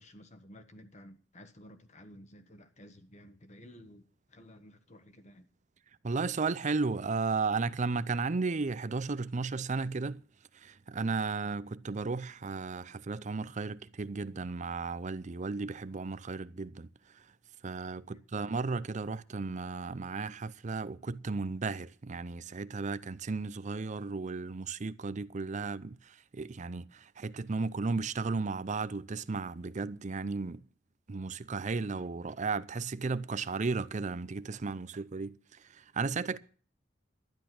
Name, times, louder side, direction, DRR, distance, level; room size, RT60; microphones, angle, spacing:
voice 1, 0.0-5.5 18.1-18.2 36.3-36.4, equal, 40° left, 1.4 m, -54 dB
voice 2, 6.0-10.2 10.5-16.9 17.1-17.2 17.6-30.6 31.1-36.4, right 4 dB, 40° right, 0.6 m, -34 dB
12.5 x 10.5 x 6.0 m
head